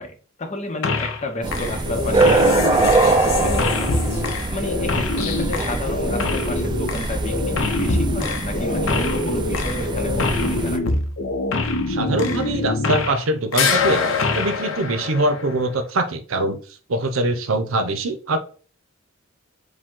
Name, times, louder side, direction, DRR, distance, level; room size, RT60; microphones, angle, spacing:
voice 1, 0.0-10.8, left 1 dB, 35° left, 6 dB, 0.7 m, -31 dB
sound 1, 0.8-1.3 1.5-13.3 13.5-15.7, left 3 dB, 75° left, 0.7 m, -24 dB
sound 2, 1.4-10.8, right 3 dB, 20° right, 0.3 m, -23 dB
voice 2, 11.9-14.0 14.3-16.6 16.9-18.4, right 2 dB, 85° right, 8 dB, 0.7 m, -23 dB
5.0 x 2.2 x 3.7 m, 0.39 s
head